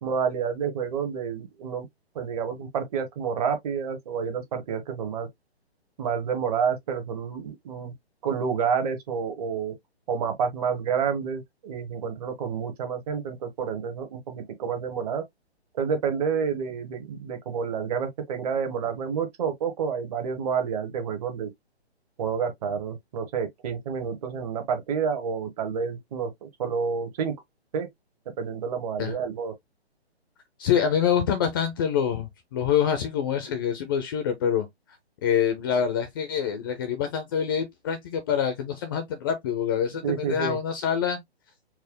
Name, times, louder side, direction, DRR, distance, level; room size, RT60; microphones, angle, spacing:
voice 1, 0.0-1.9 2.1-5.3 6.0-7.9 8.2-9.7 10.1-15.2 15.7-21.5 22.2-27.3 27.7-27.9 28.4-29.5 40.0-40.6, right 6 dB, 35° right, 1.2 m, -29 dB
voice 2, 30.6-34.7 35.2-41.2, left 8 dB, 20° left, 0.5 m, -26 dB
4.5 x 2.2 x 3.5 m
figure-of-eight pair, 140°, 33 cm